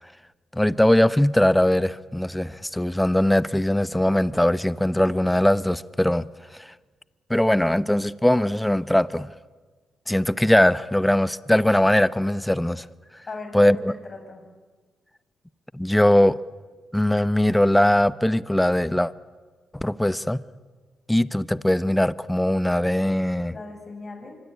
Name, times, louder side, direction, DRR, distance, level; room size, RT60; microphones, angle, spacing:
voice 1, 0.5-6.3 6.6-6.7 7.3-9.3 10.1-12.9 13.5-13.9 15.7-16.4 16.9-19.1 19.7-20.4 21.1-23.6, left 1 dB, 10° left, 0.8 m, -20 dB
voice 2, 13.3-14.4 23.5-24.4, left 3 dB, 40° left, 6.1 m, -38 dB
25.0 x 24.0 x 8.7 m
supercardioid pair, 55°, 0 cm